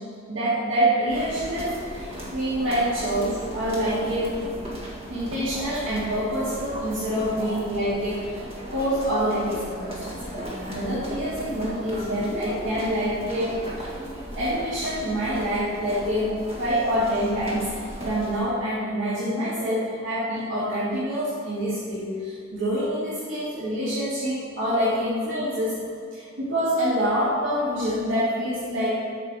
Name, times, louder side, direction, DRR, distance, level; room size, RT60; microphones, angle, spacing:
voice 1, 0.3-4.4 5.1-8.4 8.7-13.5 14.3-17.7 18.0-25.8 26.1-28.9, equal, 65° right, -11 dB, 2.5 m, -26 dB
sound 1, 1.1-18.4, equal, 30° right, 1.8 m, -37 dB
8.3 x 6.2 x 6.0 m, 2.3 s
head